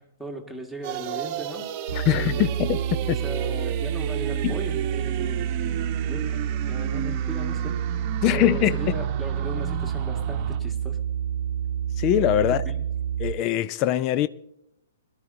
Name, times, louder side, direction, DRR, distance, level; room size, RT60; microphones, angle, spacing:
voice 1, 0.0-1.7 2.3-2.5 3.1-5.5 6.0-7.9 8.3-11.0 12.5-12.8, right 1 dB, 5° left, 1.8 m, -37 dB
sound 1, 0.8-10.6, right 9 dB, 35° right, 1.0 m, -34 dB
voice 2, 1.9-2.8 3.1-3.2 4.4-4.5 8.2-9.0 12.0-12.6 13.2-14.3, left 12 dB, 30° left, 0.6 m, -22 dB
sound 2, 1.9-13.3, right 9 dB, 65° right, 0.7 m, -28 dB
22.5 x 12.5 x 2.7 m
figure-of-eight pair, 115°, 0 cm